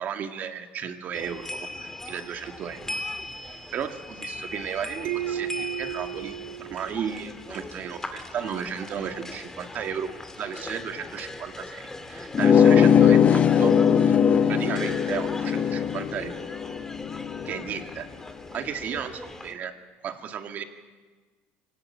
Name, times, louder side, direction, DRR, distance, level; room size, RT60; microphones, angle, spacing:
voice 1, 0.0-3.0 3.7-10.1 10.4-13.7 14.5-16.5 17.4-18.1 18.5-19.7 20.0-20.6, right 8 dB, 40° right, 6 dB, 2.1 m, -34 dB
sound 1, 1.1-19.5, left 2 dB, 10° left, 1.8 m, -39 dB
sound 2, 5.0-7.6, right 12 dB, 65° right, 2.5 m, -34 dB
sound 3, 12.3-17.6, left 8 dB, 35° left, 0.9 m, -20 dB
24.5 x 17.5 x 8.9 m, 1.4 s
cardioid pair, 130°, 4 cm